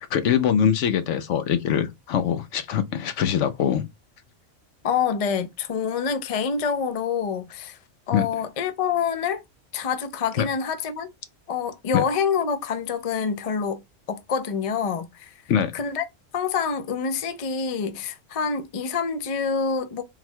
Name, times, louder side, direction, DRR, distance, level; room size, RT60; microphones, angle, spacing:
voice 1, 0.1-3.9 8.1-8.3 10.4-10.5 11.9-12.0 15.5-15.7, left 8 dB, 75° left, 0.9 m, -23 dB
voice 2, 4.8-7.8 8.1-9.4 9.7-11.1 11.5-13.8 14.1-15.3 15.7-16.1 16.3-20.0, left 6 dB, 50° left, 0.4 m, -26 dB
3.9 x 2.2 x 4.3 m
omnidirectional pair, 1.3 m